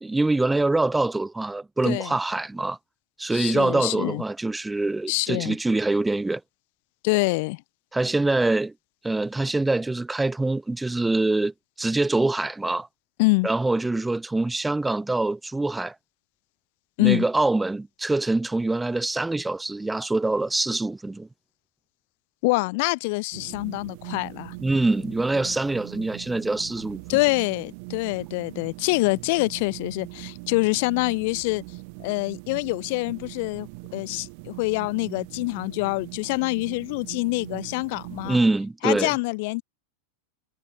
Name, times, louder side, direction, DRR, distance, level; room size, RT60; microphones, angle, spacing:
voice 1, 0.0-2.8 3.2-6.4 7.9-8.7 9.0-12.9 13.4-16.0 17.0-21.3 24.6-27.2 38.2-39.1, right 2 dB, 5° right, 0.5 m, -24 dB
voice 2, 3.3-4.2 5.1-5.6 7.0-7.6 13.2-13.5 17.0-17.2 22.4-24.5 27.1-31.6 32.0-38.4 38.8-39.6, left 26 dB, 50° left, 0.8 m, -25 dB
sound 1, 23.3-38.4, right 32 dB, 45° right, 0.9 m, -41 dB
figure-of-eight pair, 90°, 0 cm